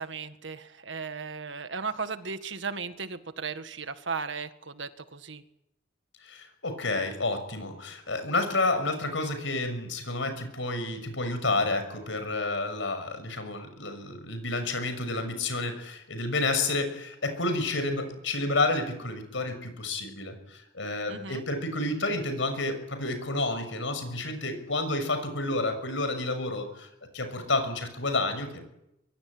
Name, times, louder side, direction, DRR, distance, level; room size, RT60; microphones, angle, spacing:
voice 1, 0.0-5.4 21.1-21.4, right 5 dB, 65° right, 10 dB, 1.7 m, -36 dB
voice 2, 6.2-26.9 27.1-28.6, left 2 dB, 70° left, 9 dB, 6.4 m, -30 dB
24.0 x 23.0 x 9.6 m, 0.84 s
head